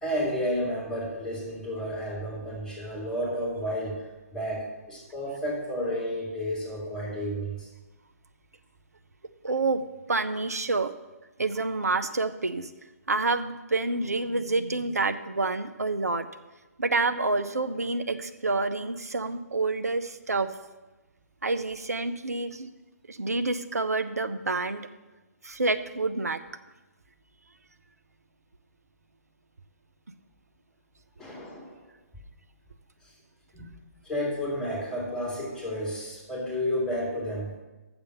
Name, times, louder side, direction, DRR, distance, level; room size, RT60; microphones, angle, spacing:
voice 1, 0.0-4.0 4.3-7.7 31.2-31.8 33.5-33.6 34.0-37.5, equal, 5° left, -3 dB, 2.2 m, -31 dB
voice 2, 9.4-9.8 10.1-10.9 11.4-12.7 13.1-16.3 16.8-20.5 21.4-22.7 23.1-24.9 25.4-26.4, right 3 dB, 70° right, 10 dB, 0.6 m, -28 dB
7.0 x 6.7 x 6.7 m, 1.1 s
figure-of-eight pair, 135°, 9 cm